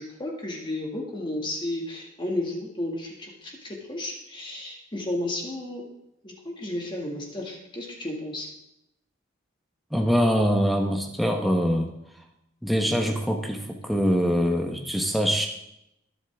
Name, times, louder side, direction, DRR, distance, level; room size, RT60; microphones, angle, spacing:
voice 1, 0.0-5.9 6.2-8.5, left 1 dB, 25° left, -1 dB, 2.0 m, -33 dB
voice 2, 9.9-11.9 12.6-15.5, equal, ahead, 2 dB, 1.0 m, -23 dB
22.0 x 8.1 x 3.6 m, 0.83 s
head